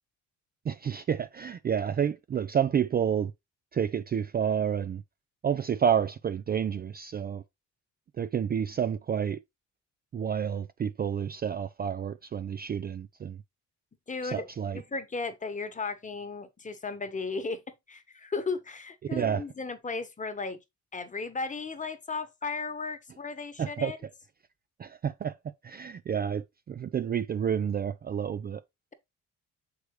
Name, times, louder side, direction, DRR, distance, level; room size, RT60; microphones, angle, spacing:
voice 1, 0.7-3.3 3.7-5.0 5.4-7.4 8.2-9.4 10.1-13.4 14.3-14.8 19.1-19.4 23.6-23.9 24.8-25.3 25.6-28.6, right 8 dB, 30° right, 0.4 m, -29 dB
voice 2, 14.1-17.6 17.9-20.6 20.9-24.0, left 4 dB, 25° left, 1.2 m, -35 dB
6.6 x 4.8 x 3.2 m
cardioid pair, 90°, 30 cm